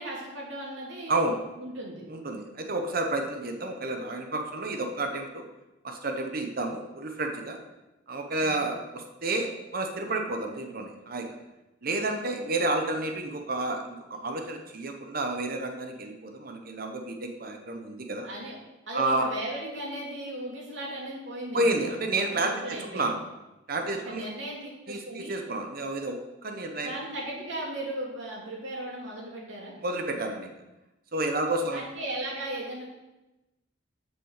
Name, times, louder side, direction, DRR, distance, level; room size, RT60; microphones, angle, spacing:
voice 1, 0.0-1.2 1.6-2.0 8.4-8.7 18.2-18.5 18.9-21.9 22.3-23.0 23.9-25.4 26.8-29.7 31.7-32.9, right 1 dB, 75° right, -3 dB, 2.9 m, -36 dB
voice 2, 2.1-5.5 5.8-7.6 8.1-11.3 11.8-18.3 18.9-19.3 21.5-23.2 23.7-24.3 24.9-26.9 29.8-30.5 31.1-31.8, right 2 dB, 50° right, 4 dB, 1.0 m, -30 dB
7.6 x 6.5 x 6.6 m, 1.0 s
head